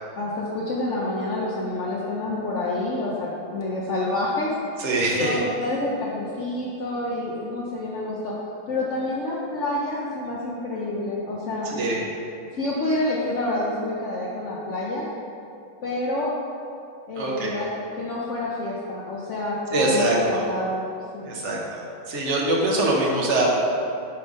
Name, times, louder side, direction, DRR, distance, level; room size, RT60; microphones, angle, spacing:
voice 1, 0.1-4.5 5.1-8.3 8.7-11.7 12.5-15.0 15.8-16.3 17.1-20.9 21.1-21.4, left 2 dB, 65° left, -5 dB, 0.7 m, -28 dB
voice 2, 4.8-5.4 11.6-12.0 17.2-17.6 19.7-20.4 21.2-23.5, right 2 dB, 40° right, -3 dB, 1.2 m, -23 dB
8.8 x 3.4 x 5.3 m, 2.5 s
omnidirectional pair, 2.2 m